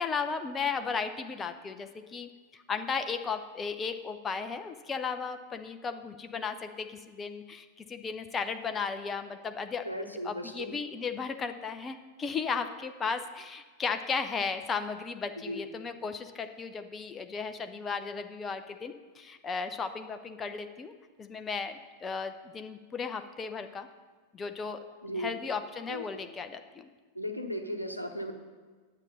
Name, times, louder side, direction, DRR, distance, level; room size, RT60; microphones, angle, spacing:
voice 1, 0.0-20.9 21.2-23.9 24.3-24.8 25.2-26.9, left 5 dB, 20° left, 8 dB, 0.6 m, -35 dB
voice 2, 9.8-10.8 15.5-15.6 25.0-25.4 25.9-26.3 27.1-28.3, equal, 90° left, 5 dB, 0.9 m, -36 dB
9.9 x 7.3 x 5.5 m, 1.4 s
figure-of-eight pair, 90°, 0 cm